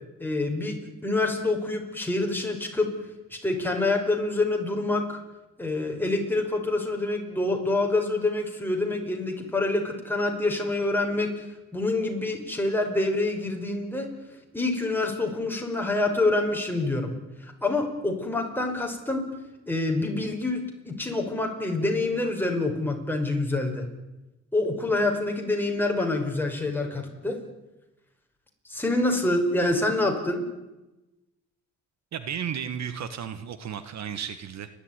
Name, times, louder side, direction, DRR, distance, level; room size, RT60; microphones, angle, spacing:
voice 1, 0.2-0.8 1.0-2.9 3.3-5.2 5.6-11.3 11.7-14.1 14.5-17.1 17.6-19.3 19.7-23.9 24.5-27.4 28.7-30.5, left 2 dB, 5° left, 1 dB, 5.6 m, -26 dB
voice 2, 32.1-34.7, right 8 dB, 65° right, 12 dB, 1.6 m, -33 dB
30.0 x 12.5 x 9.8 m, 1.0 s
cardioid pair, 90°, 30 cm